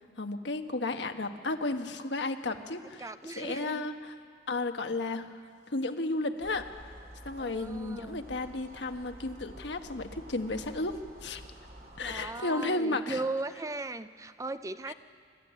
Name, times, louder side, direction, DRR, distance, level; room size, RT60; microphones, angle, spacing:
voice 1, 0.2-4.1 4.5-5.3 5.7-6.7 7.2-11.4 12.0-13.2 14.9-15.0, left 2 dB, 75° left, 6 dB, 1.2 m, -33 dB
voice 2, 3.0-3.8 7.4-8.3 12.0-14.9, right 2 dB, 20° right, 12 dB, 0.5 m, -37 dB
sound 1, 6.4-12.3, right 1 dB, 55° right, 2.5 m, -50 dB
25.5 x 12.5 x 8.7 m, 2.2 s
head